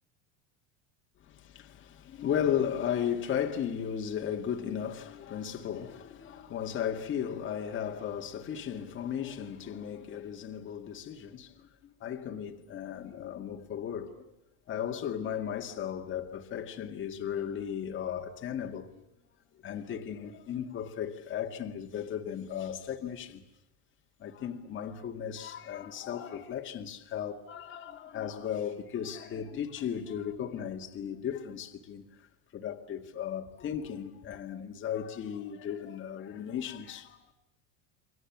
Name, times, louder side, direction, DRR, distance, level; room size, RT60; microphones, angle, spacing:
voice 1, 1.2-14.3 14.7-19.0 19.6-23.5 24.2-32.3 32.5-37.3, left 9 dB, 35° left, 2.0 m, -36 dB
28.5 x 24.0 x 7.3 m
cardioid pair, 145°, 35 cm